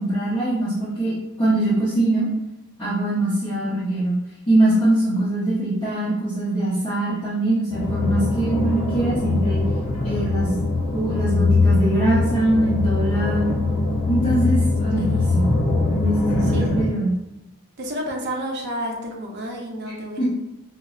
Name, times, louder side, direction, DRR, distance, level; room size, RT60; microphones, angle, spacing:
voice 1, 0.0-2.3 2.8-4.1 4.5-9.6 10.0-10.6 10.9-13.5 14.1-15.0 15.3-15.5 15.9-17.1 20.2-20.3, right 1 dB, 25° left, -11 dB, 0.8 m, -22 dB
sound 1, 7.7-16.9, left 3 dB, 80° left, 0.7 m, -22 dB
voice 2, 15.0-15.3 16.4-16.7 17.8-20.2, equal, 50° right, 0 dB, 0.6 m, -30 dB
5.3 x 2.0 x 2.3 m, 0.94 s
head